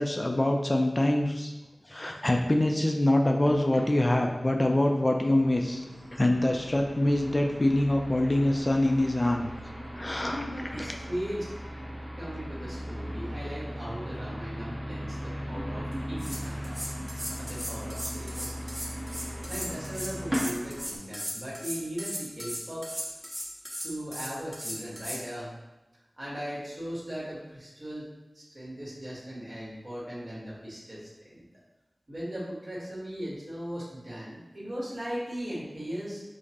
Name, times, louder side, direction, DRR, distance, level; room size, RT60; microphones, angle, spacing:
voice 1, 0.0-1.5 1.9-5.8 6.1-9.5 10.0-10.4, left 1 dB, 35° left, 2 dB, 0.4 m, -25 dB
sound 1, 3.4-21.0, equal, 35° right, 1.1 m, -38 dB
voice 2, 10.3-11.5 12.2-16.8 17.3-18.6 19.5-23.2 23.8-25.5 26.2-28.1 28.3-31.4 32.1-36.2, equal, 55° right, -7 dB, 1.5 m, -38 dB
sound 2, 15.9-25.2, equal, 15° right, 0.8 m, -37 dB
4.9 x 2.1 x 2.9 m, 1.0 s
wide cardioid pair, 45°, 0 cm